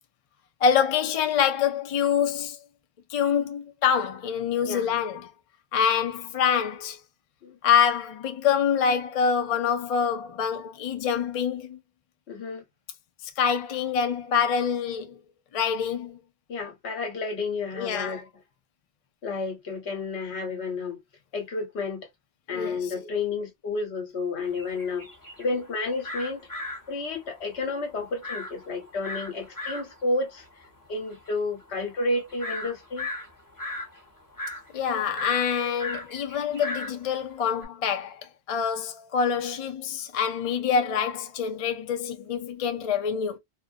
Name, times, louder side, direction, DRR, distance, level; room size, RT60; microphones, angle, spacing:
voice 1, 0.6-2.6 3.1-5.3 5.7-7.0 7.6-11.8 13.2-15.2 15.5-16.2 17.7-18.2 22.5-22.9 34.7-38.2 38.5-43.4, left 7 dB, 55° left, 0.4 m, -26 dB
voice 2, 4.6-4.9 7.4-7.6 12.3-12.6 16.5-18.3 19.2-21.0 21.3-22.1 22.5-25.1 25.4-26.5 26.9-30.6 30.9-33.1, left 3 dB, 75° left, 1.2 m, -31 dB
sound 1, 24.4-37.7, left 2 dB, 20° left, 0.6 m, -37 dB
2.5 x 2.1 x 2.4 m
omnidirectional pair, 1.1 m